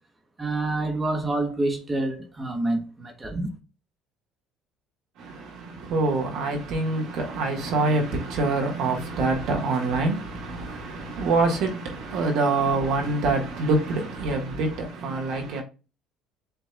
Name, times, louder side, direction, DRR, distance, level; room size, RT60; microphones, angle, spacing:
voice 1, 0.4-3.5, right 2 dB, 20° right, 1.4 m, -27 dB
voice 2, 5.2-15.6, right 3 dB, 70° right, 1.6 m, -25 dB
7.4 x 3.0 x 2.3 m
cardioid pair, 105°, 0 cm